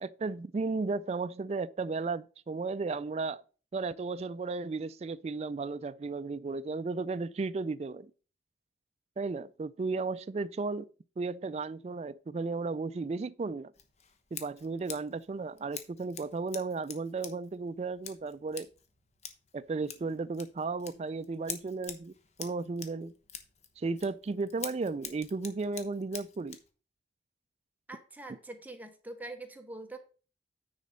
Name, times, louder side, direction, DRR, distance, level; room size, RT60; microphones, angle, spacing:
voice 1, 0.0-3.4 3.7-8.1 9.2-10.9 11.2-13.7 14.3-18.7 19.5-22.1 22.4-23.1 23.8-26.6, right 3 dB, 35° right, 0.3 m, -34 dB
Scissors, 13.7-26.7, left 8 dB, 35° left, 1.0 m, -47 dB
voice 2, 27.9-30.0, right 2 dB, 10° right, 0.9 m, -44 dB
9.6 x 4.2 x 5.3 m
head